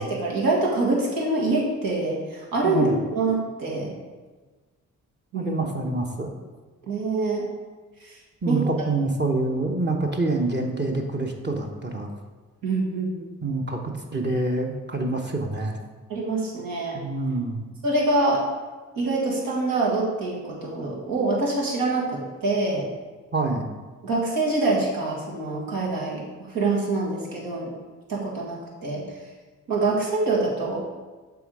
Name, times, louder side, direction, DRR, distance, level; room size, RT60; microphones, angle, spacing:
voice 1, 0.0-3.9 5.3-5.6 6.9-7.5 8.0-8.2 8.5-8.6 12.6-13.2 16.1-17.0 17.8-18.4 19.0-22.8 24.0-26.2 26.5-27.7 28.1-29.0 29.7-30.8, right 2 dB, 75° right, -3 dB, 1.8 m, -25 dB
voice 2, 2.6-2.9 5.3-6.3 8.4-12.1 13.4-15.8 16.9-17.6 23.3-23.7, right 2 dB, 30° right, 1 dB, 1.1 m, -26 dB
7.0 x 3.6 x 4.8 m, 1.3 s
supercardioid pair, 45°, 35 cm